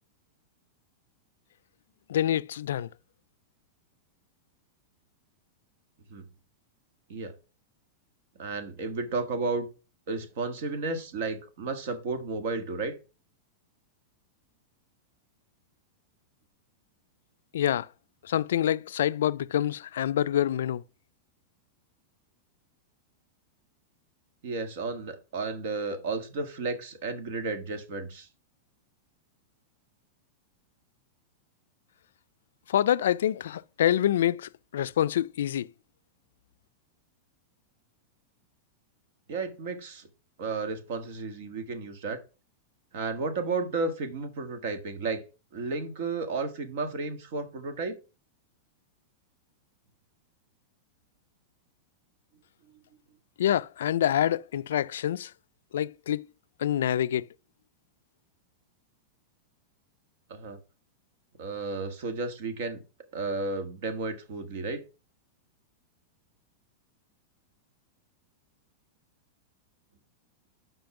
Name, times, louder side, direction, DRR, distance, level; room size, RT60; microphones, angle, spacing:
voice 1, 2.1-2.9 17.5-17.9 18.2-20.8 32.7-35.7 53.4-55.3 55.7-56.2 56.6-57.3, left 11 dB, 85° left, 0.3 m, -26 dB
voice 2, 8.4-9.7 10.1-12.9 24.4-28.3 39.3-40.1 40.4-42.2 42.9-45.2 45.5-47.9 52.7-52.8 60.3-60.6 61.4-62.8 63.1-64.8, right 3 dB, 55° right, 1.5 m, -33 dB
5.6 x 5.3 x 5.7 m
supercardioid pair, 165°, 0 cm